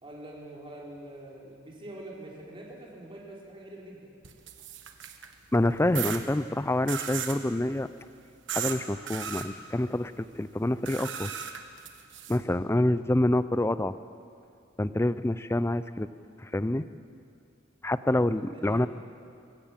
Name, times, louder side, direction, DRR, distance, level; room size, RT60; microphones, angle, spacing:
voice 1, 0.0-4.1 18.1-18.9, right 1 dB, 25° right, -3 dB, 4.0 m, -45 dB
sound 1, 4.2-5.3 5.9-6.2 6.9-7.4 8.5-8.8 9.1-9.5 10.9-12.4, right 9 dB, 65° right, 1.5 m, -35 dB
voice 2, 5.5-7.9 8.5-11.3 12.3-14.0 14.8-16.1 16.4-16.9 17.8-18.9, left 1 dB, 15° left, 14 dB, 0.5 m, -27 dB
25.0 x 15.5 x 7.4 m, 2.4 s
head